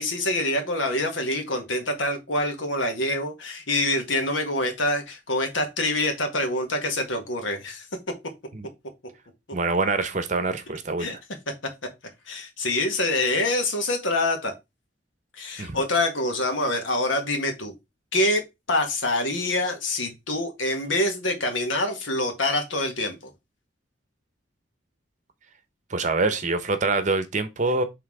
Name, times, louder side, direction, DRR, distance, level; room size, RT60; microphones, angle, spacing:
voice 1, 0.0-7.9 11.0-11.2 11.5-11.6 12.3-14.5 15.4-17.7 18.1-18.4 18.7-23.2, left 1 dB, 85° left, 1.7 m, -25 dB
voice 2, 9.5-11.1 15.6-15.8 25.9-27.8, right 3 dB, 40° right, 0.8 m, -25 dB
5.7 x 3.6 x 4.7 m
head